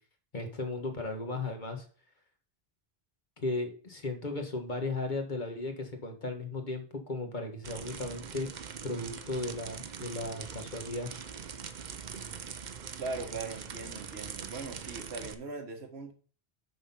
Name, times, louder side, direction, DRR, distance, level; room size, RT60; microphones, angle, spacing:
voice 1, 0.3-1.8 3.4-8.5 8.8-11.1, left 2 dB, 50° left, 4 dB, 1.6 m, -36 dB
sound 1, 7.6-15.3, right 7 dB, 50° right, 0.7 m, -42 dB
voice 2, 13.0-16.1, right 3 dB, 90° right, 4 dB, 1.7 m, -40 dB
6.4 x 5.9 x 5.4 m, 0.40 s
omnidirectional pair, 1.0 m